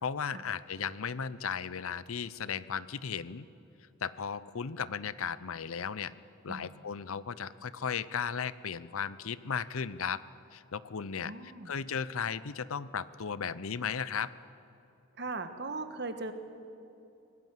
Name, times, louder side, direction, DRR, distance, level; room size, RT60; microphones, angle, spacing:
voice 1, 0.0-3.5 4.0-6.1 6.4-10.2 10.5-11.3 11.7-14.3, left 6 dB, 80° left, 17 dB, 0.7 m, -35 dB
voice 2, 11.2-11.7 15.2-16.3, right 3 dB, 50° right, 8 dB, 1.4 m, -38 dB
25.0 x 18.0 x 7.6 m, 2.8 s
head